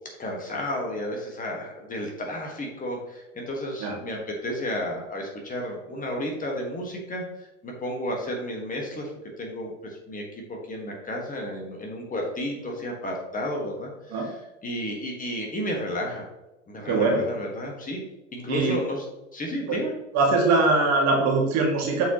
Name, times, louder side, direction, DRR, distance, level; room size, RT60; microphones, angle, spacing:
voice 1, 0.2-9.1 9.4-16.2 16.7-18.0 18.3-19.0 19.3-19.9, left 1 dB, 20° left, 0 dB, 1.6 m, -32 dB
voice 2, 16.9-17.2 18.5-18.7 19.7-19.8 20.1-22.0, right 3 dB, 45° right, 0 dB, 1.9 m, -22 dB
7.8 x 4.6 x 3.0 m, 0.99 s
hypercardioid pair, 90°, 37 cm